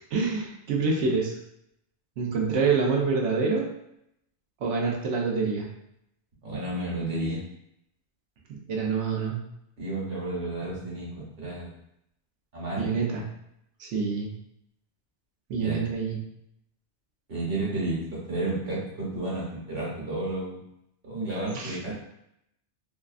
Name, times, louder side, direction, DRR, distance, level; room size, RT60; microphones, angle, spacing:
voice 1, 0.1-1.3 2.2-3.7 4.6-5.7 8.7-9.4 12.8-13.2 13.8-14.3 15.5-16.2 21.5-21.8, right 4 dB, 85° right, -1 dB, 0.9 m, -26 dB
voice 2, 6.4-7.4 9.8-11.7 12.5-12.9 15.6-15.8 17.3-20.6 21.0-21.9, right 2 dB, 55° right, -6 dB, 1.1 m, -31 dB
2.7 x 2.4 x 2.3 m, 0.78 s
omnidirectional pair, 1.2 m